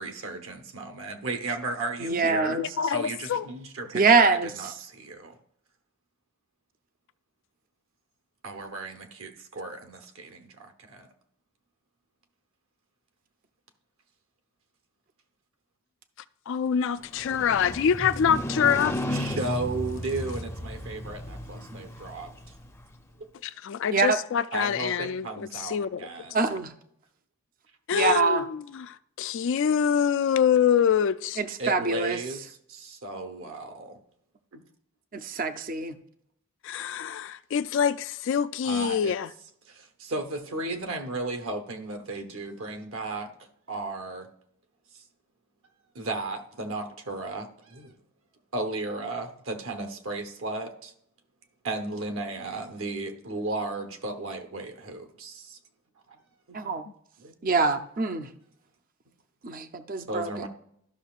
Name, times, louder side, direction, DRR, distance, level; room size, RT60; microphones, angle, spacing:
voice 1, 0.0-2.6 2.9-5.4 8.4-11.1 19.1-22.3 24.5-26.6 31.6-34.0 34.5-34.6 38.6-39.1 39.7-43.3 43.7-44.3 44.9-45.0 45.9-47.9 48.5-50.9 51.6-55.6 56.1-56.2 56.5-56.7 57.2-57.3 60.1-60.5, right 2 dB, 65° right, 1.1 m, -35 dB
voice 2, 2.0-2.6 3.9-4.5 23.9-24.2 26.3-26.7 27.9-28.4 31.4-32.2 35.1-35.9 56.5-56.8 57.4-58.3 59.4-60.3, right 4 dB, 40° right, 0.5 m, -24 dB
voice 3, 2.6-3.5 16.5-18.9 23.4-26.1 27.9-31.4 36.6-39.3, left 8 dB, 55° left, 0.3 m, -25 dB
Motorcycle, 17.0-23.0, equal, 10° left, 0.6 m, -34 dB
12.5 x 6.1 x 2.4 m
head